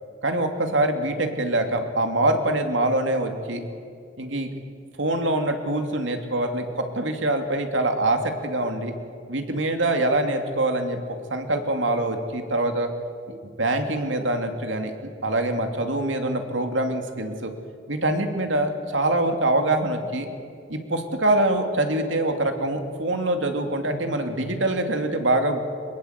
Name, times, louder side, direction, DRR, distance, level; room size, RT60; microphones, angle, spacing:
voice 1, 0.2-3.6 4.2-4.5 5.0-8.9 9.3-11.0 11.3-12.9 13.3-14.9 15.2-17.5 17.9-20.3 20.7-25.6, right 1 dB, 80° right, 5 dB, 2.7 m, -24 dB
23.5 x 21.5 x 8.2 m, 2.3 s
head